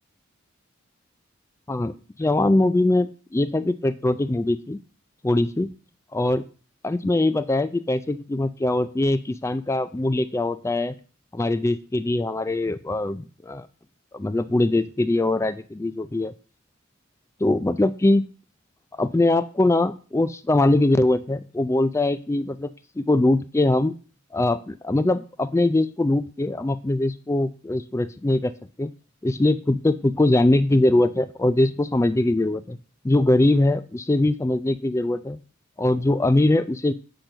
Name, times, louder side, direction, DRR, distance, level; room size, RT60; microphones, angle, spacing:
voice 1, 1.7-4.8 5.2-5.7 6.1-6.4 6.8-11.0 11.3-13.7 14.1-16.3 17.4-18.3 18.9-24.0 24.3-28.5 28.8-28.9 29.2-32.8 33.0-35.4 35.8-36.9, left 2 dB, 15° left, 13 dB, 0.3 m, -22 dB
7.7 x 4.4 x 6.5 m, 0.38 s
head